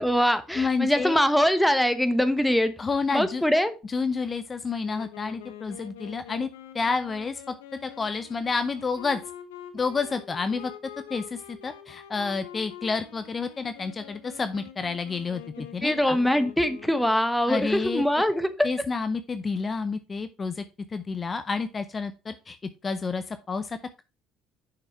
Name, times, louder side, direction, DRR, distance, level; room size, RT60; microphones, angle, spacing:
voice 1, 0.0-2.7 3.1-3.8 15.8-18.5, equal, ahead, 10 dB, 1.1 m, -23 dB
voice 2, 0.5-1.2 2.8-3.4 3.9-6.5 6.7-7.5 7.8-9.2 9.7-10.7 11.1-15.4 15.7-16.2 17.5-18.0 18.6-20.6 20.9-22.6 22.8-24.0, left 4 dB, 30° left, 11 dB, 0.6 m, -29 dB
Wind instrument woodwind instrument, 4.8-17.3, left 10 dB, 90° left, 1.0 m, -45 dB
6.9 x 5.8 x 4.1 m, 0.31 s
hypercardioid pair, 75°, 0 cm